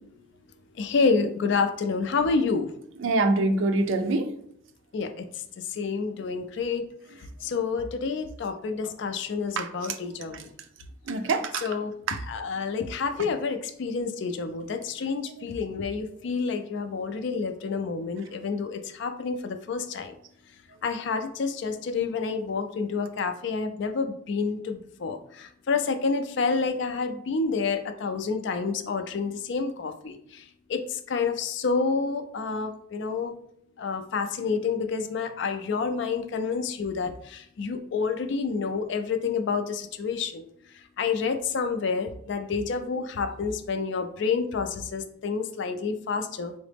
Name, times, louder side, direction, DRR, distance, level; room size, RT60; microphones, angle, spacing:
voice 1, 0.7-2.7 4.9-6.9 7.2-10.5 11.6-11.9 12.2-20.2 20.8-33.4 33.8-40.4 41.0-46.5, left 4 dB, 65° left, 8 dB, 0.4 m, -29 dB
voice 2, 3.0-4.3 9.6-9.7 11.1-11.6 12.1-12.2, right 2 dB, 70° right, 8 dB, 0.4 m, -24 dB
3.8 x 2.0 x 3.3 m, 0.69 s
head